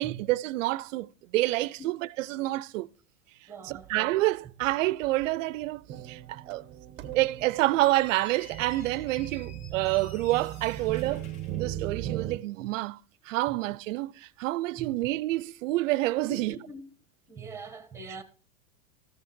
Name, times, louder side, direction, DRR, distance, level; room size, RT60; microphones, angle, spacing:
voice 1, 0.0-2.9 3.6-6.6 7.1-11.2 11.6-13.0 13.3-16.5, right 18 dB, 65° right, 0.5 m, -28 dB
voice 2, 3.5-3.9 9.6-9.8 12.3-12.5 13.5-13.6 14.8-15.0 16.3-16.9 17.3-18.2, right 4 dB, 5° right, 0.9 m, -43 dB
sound 1, 3.7-4.0 4.6-4.8 5.0-12.4, right 12 dB, 25° right, 0.6 m, -39 dB
Squeak, 7.7-12.4, left 5 dB, 75° left, 2.1 m, -52 dB
13.5 x 6.4 x 4.4 m
supercardioid pair, 140°, 42 cm